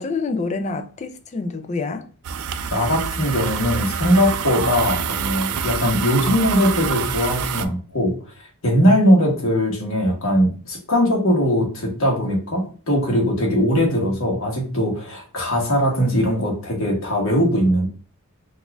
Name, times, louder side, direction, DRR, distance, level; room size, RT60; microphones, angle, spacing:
voice 1, 0.0-2.1, left 3 dB, 30° left, 0.3 m, -27 dB
sound 1, 2.2-7.7, right 7 dB, 75° right, 0.3 m, -26 dB
voice 2, 2.7-8.2 8.6-17.9, equal, 60° left, 1.2 m, -20 dB
4.0 x 2.4 x 2.3 m
head